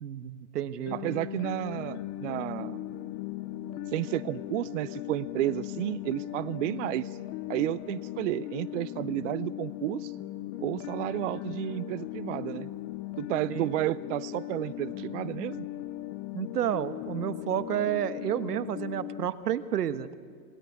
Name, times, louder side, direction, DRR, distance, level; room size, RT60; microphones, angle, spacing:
voice 1, 0.0-1.2 13.5-13.7 16.3-20.1, right 10 dB, 85° right, 12 dB, 1.4 m, -31 dB
sound 1, 0.8-19.3, left 14 dB, 25° left, 0.6 m, -38 dB
voice 2, 0.9-2.8 3.9-7.2 7.5-10.1 10.6-12.7 13.2-15.7, right 16 dB, 55° right, 18 dB, 0.6 m, -32 dB
27.0 x 19.5 x 8.4 m, 2.2 s
hypercardioid pair, 135°, 46 cm